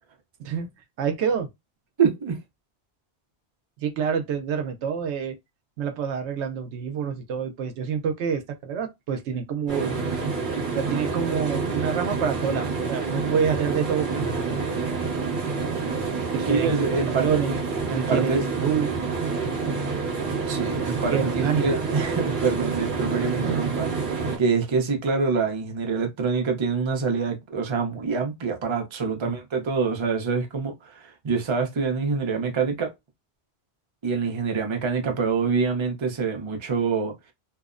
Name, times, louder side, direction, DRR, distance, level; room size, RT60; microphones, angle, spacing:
voice 1, 1.0-1.5 3.8-5.3 5.8-9.9 10.8-14.6 16.3-16.9 17.2-17.5 18.0-18.9 21.1-21.8 23.5-23.7 29.2-29.3, right 7 dB, 80° right, 0.9 m, -27 dB
voice 2, 2.0-2.4 16.5-17.6 17.9-18.5 20.5-32.9 34.0-37.1, right 5 dB, 35° right, 0.5 m, -26 dB
sound 1, 9.7-24.4, right 4 dB, 50° right, 0.9 m, -28 dB
2.8 x 2.0 x 2.4 m
omnidirectional pair, 1.2 m